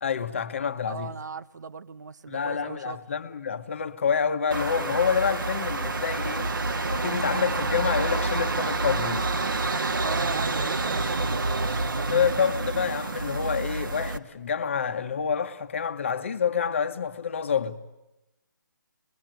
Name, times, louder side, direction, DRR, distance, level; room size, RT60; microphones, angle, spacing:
voice 1, 0.0-1.1 2.3-6.5 6.9-9.3 12.1-17.8, left 7 dB, 40° left, 1.2 m, -27 dB
voice 2, 0.9-3.0 9.6-12.2, right 5 dB, 60° right, 0.9 m, -38 dB
sound 1, 4.5-14.2, right 3 dB, 85° right, 1.7 m, -28 dB
24.5 x 21.5 x 9.1 m
hypercardioid pair, 175°, 11 cm